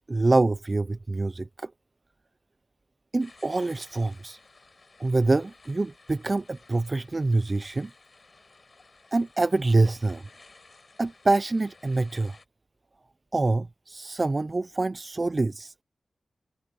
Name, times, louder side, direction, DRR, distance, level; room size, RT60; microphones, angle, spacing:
voice 1, 0.1-1.7 3.1-4.4 5.0-7.9 9.1-10.3 11.0-12.4 13.3-15.8, right 2 dB, 40° right, 0.4 m, -25 dB
sound 1, 3.2-12.4, left 3 dB, 50° left, 4.6 m, -55 dB
cardioid pair, 55°, 0 cm